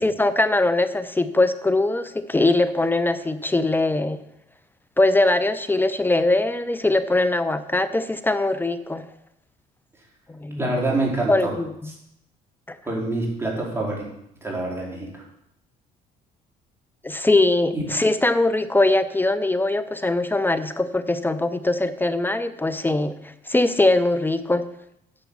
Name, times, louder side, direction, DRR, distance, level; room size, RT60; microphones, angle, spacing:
voice 1, 0.0-4.2 5.0-9.1 10.3-10.8 11.3-11.7 12.7-12.8 17.0-24.6, left 2 dB, 10° left, 13 dB, 0.5 m, -21 dB
voice 2, 10.6-11.5 12.8-14.0 14.4-15.2 17.7-17.8, right 2 dB, 15° right, -3 dB, 4.3 m, -26 dB
10.0 x 6.6 x 7.1 m, 0.79 s
cardioid pair, 110°, 17 cm